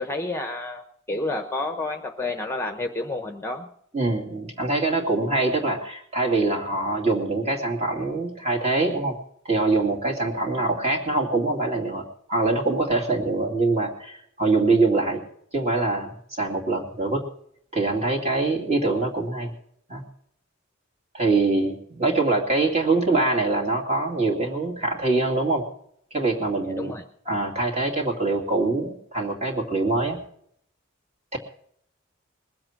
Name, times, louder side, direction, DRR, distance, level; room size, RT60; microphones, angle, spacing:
voice 1, 0.0-3.7 22.1-22.2 26.6-27.0, left 2 dB, 10° left, 5 dB, 0.9 m, -30 dB
voice 2, 3.9-9.2 9.4-12.0 12.3-15.2 15.5-17.2 17.7-19.5 19.9-20.0 21.1-25.7 26.1-26.9 27.3-30.2 31.3-31.4, right 3 dB, 30° right, 1 dB, 2.5 m, -24 dB
20.5 x 7.8 x 5.9 m, 0.68 s
head